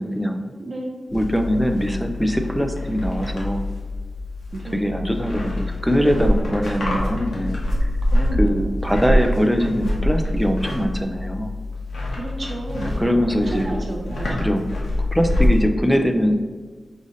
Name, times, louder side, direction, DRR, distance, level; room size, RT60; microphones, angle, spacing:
voice 1, 0.0-0.5 1.1-3.7 4.7-7.6 8.4-11.5 13.0-13.7 14.4-14.7 15.0-16.3, equal, ahead, 5 dB, 0.4 m, -22 dB
voice 2, 0.6-1.1 4.5-5.0 8.1-8.7 12.1-14.5, right 2 dB, 50° right, 0 dB, 0.6 m, -32 dB
sound 1, 1.1-15.7, left 1 dB, 85° left, 0.9 m, -25 dB
4.8 x 2.6 x 3.8 m, 1.4 s
wide cardioid pair, 105°, 0 cm